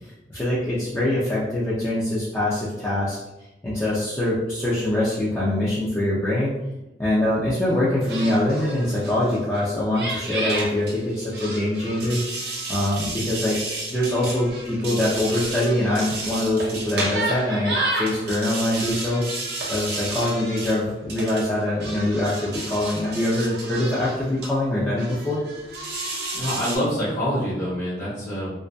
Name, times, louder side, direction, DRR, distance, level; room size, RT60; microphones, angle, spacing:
voice 1, 0.3-3.2 3.6-6.5 7.0-12.2 12.7-13.6 13.9-19.2 19.7-25.4, left 1 dB, 10° left, -9 dB, 0.4 m, -24 dB
sound 1, 8.0-9.7 9.9-24.5 25.0-26.8, right 2 dB, 65° right, 0.6 m, -31 dB
voice 2, 26.3-28.5, equal, 45° left, -8 dB, 0.9 m, -26 dB
2.5 x 2.2 x 2.2 m, 0.98 s
head